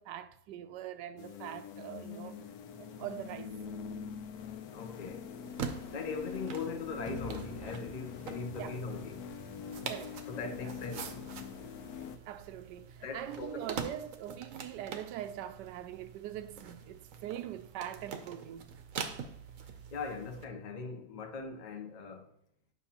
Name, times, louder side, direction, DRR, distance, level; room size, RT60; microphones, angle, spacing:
voice 1, 0.0-2.4 2.8-3.5 8.6-8.8 9.9-10.7 12.0-18.7, right 11 dB, 85° right, 1.2 m, -43 dB
sound 1, 1.2-12.2, left 7 dB, 70° left, 1.1 m, -44 dB
voice 2, 4.7-5.3 5.9-9.9 10.3-11.6 13.0-13.7 19.9-22.3, left 4 dB, 40° left, 0.6 m, -41 dB
sound 2, 5.4-20.4, right 6 dB, 60° right, 1.0 m, -45 dB
sound 3, 7.1-10.2, right 1 dB, 5° right, 0.5 m, -49 dB
9.6 x 5.8 x 2.9 m
omnidirectional pair, 1.8 m